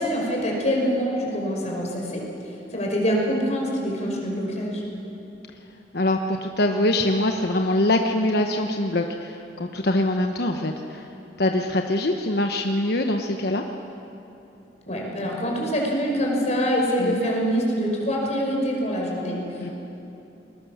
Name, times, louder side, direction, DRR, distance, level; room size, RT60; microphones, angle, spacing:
voice 1, 0.0-2.2 2.7-4.8 14.9-19.4, equal, 40° left, -1 dB, 5.5 m, -25 dB
voice 2, 5.9-11.1 11.4-13.6 17.0-17.2 19.6-19.7, left 1 dB, 65° left, 4 dB, 1.1 m, -23 dB
30.0 x 21.5 x 7.2 m, 2.9 s
head